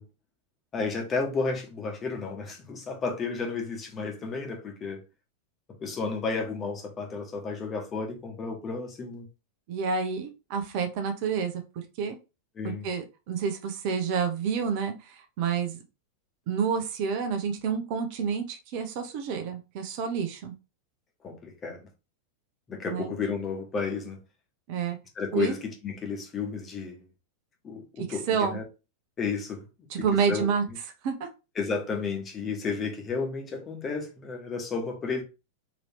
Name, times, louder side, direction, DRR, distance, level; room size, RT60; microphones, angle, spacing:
voice 1, 0.7-5.0 5.8-9.2 12.6-12.9 21.2-21.8 22.7-24.2 25.1-27.0 27.6-28.6 29.2-29.6 30.3-30.8 31.6-35.2, left 4 dB, 25° left, 1.1 m, -32 dB
voice 2, 9.7-12.2 12.6-15.8 16.5-20.5 22.9-23.1 24.7-25.0 25.3-25.5 28.0-28.6 29.9-30.6 31.0-31.3, right 6 dB, 45° right, 0.7 m, -29 dB
4.0 x 2.9 x 3.1 m
figure-of-eight pair, 90°, 0 cm